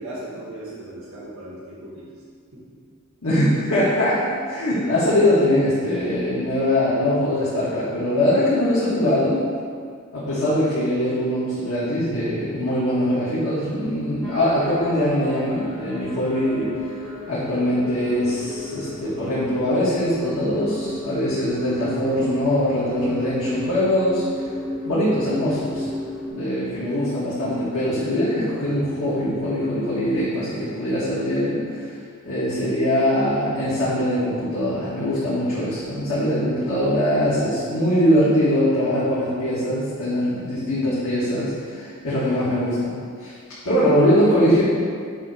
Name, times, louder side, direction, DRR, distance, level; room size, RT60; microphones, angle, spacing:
voice 1, 0.0-2.1 2.5-2.6, right 1 dB, 65° right, -9 dB, 1.5 m, -37 dB
voice 2, 3.2-9.4 10.1-16.7 17.3-24.2 24.8-25.9 26.3-31.9 32.2-43.3 43.6-44.6, left 1 dB, 85° left, -11 dB, 1.6 m, -22 dB
sound 1, 14.2-26.3, left 1 dB, ahead, 0.9 m, -34 dB
7.5 x 3.0 x 6.1 m, 2.1 s
head